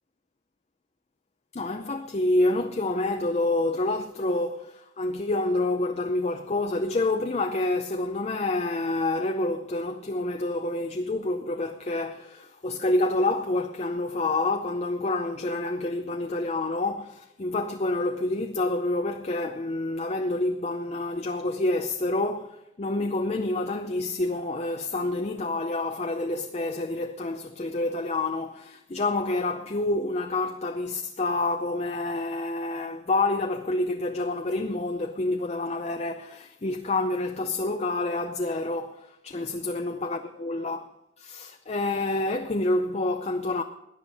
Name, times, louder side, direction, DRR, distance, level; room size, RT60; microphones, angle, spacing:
voice 1, 1.5-40.8 41.2-43.6, left 2 dB, 35° left, 0.5 m, -28 dB
17.5 x 10.5 x 4.1 m
head